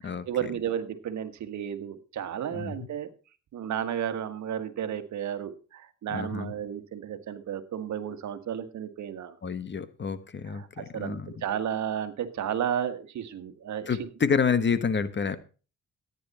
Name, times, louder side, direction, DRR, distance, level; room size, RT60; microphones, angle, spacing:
voice 1, 0.0-3.1 3.5-9.3 10.5-14.1, right 9 dB, 70° right, 10 dB, 1.7 m, -33 dB
voice 2, 2.5-2.9 6.1-6.5 9.4-11.4 13.9-15.4, left 6 dB, 35° left, 14 dB, 1.3 m, -28 dB
14.0 x 9.9 x 4.2 m, 0.35 s
cardioid pair, 90°, 30 cm